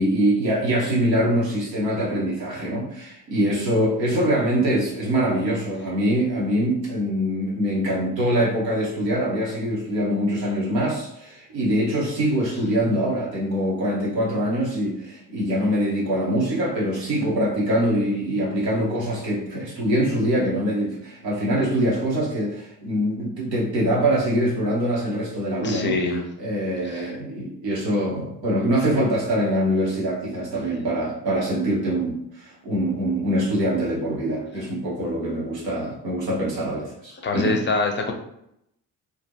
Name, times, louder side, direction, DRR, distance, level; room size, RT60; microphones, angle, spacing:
voice 1, 0.0-25.9 26.4-37.5, equal, 85° right, -4 dB, 0.8 m, -24 dB
voice 2, 25.6-26.2 26.9-27.0 37.2-38.1, left 3 dB, 25° left, 3 dB, 0.5 m, -24 dB
2.4 x 2.1 x 2.8 m, 0.77 s
figure-of-eight pair, 45°, 48 cm